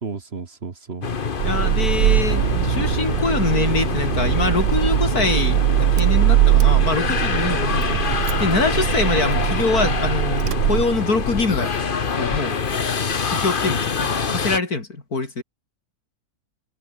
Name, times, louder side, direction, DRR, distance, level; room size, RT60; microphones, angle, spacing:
voice 1, 0.0-1.1, right 5 dB, 40° right, 1.7 m, -33 dB
sound 1, 1.0-14.6, left 5 dB, 35° left, 1.3 m, -25 dB
voice 2, 1.4-7.9 8.4-11.7 12.2-12.6 13.3-15.4, left 3 dB, 70° left, 4.3 m, -24 dB
Car / Engine starting, 1.4-11.4, right 15 dB, 90° right, 1.2 m, -21 dB
omnidirectional pair, 1.7 m